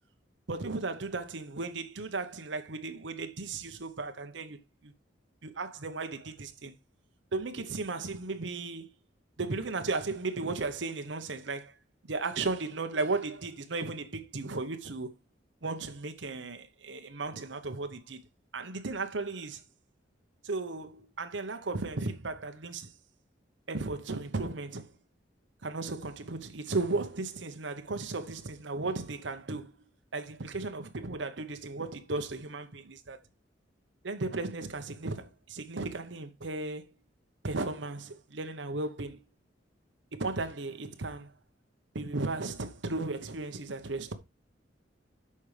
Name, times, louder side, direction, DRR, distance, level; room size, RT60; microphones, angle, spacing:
voice 1, 0.5-4.9 5.4-6.7 7.3-8.9 9.4-11.7 12.0-15.2 15.6-18.2 18.5-19.6 20.4-22.9 23.7-24.9 25.6-29.7 30.1-33.2 34.0-36.8 37.4-39.2 40.1-41.3 41.9-44.1, right 3 dB, 80° right, 1.0 m, -35 dB
8.5 x 5.6 x 3.3 m
head